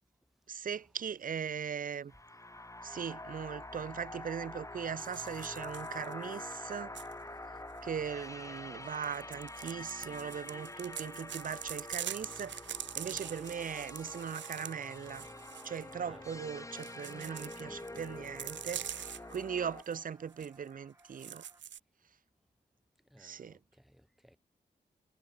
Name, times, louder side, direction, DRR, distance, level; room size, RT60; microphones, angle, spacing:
voice 1, 0.5-2.1 2.8-7.0 7.8-12.6 13.0-15.3 15.6-21.4 23.2-23.6, right 7 dB, 50° right, 0.5 m, -39 dB
sound 1, 2.1-19.8, left 2 dB, 15° left, 1.3 m, -46 dB
sound 2, 2.5-21.6, right 1 dB, 15° right, 7.1 m, -61 dB
sound 3, 5.0-7.1 8.9-15.9 16.8-19.4 19.8-20.0 20.3-20.5 21.0-21.8, right 9 dB, 85° right, 0.8 m, -44 dB
voice 2, 17.6-18.0 23.1-24.4, equal, ahead, 2.1 m, -60 dB
cardioid pair, 55°, 18 cm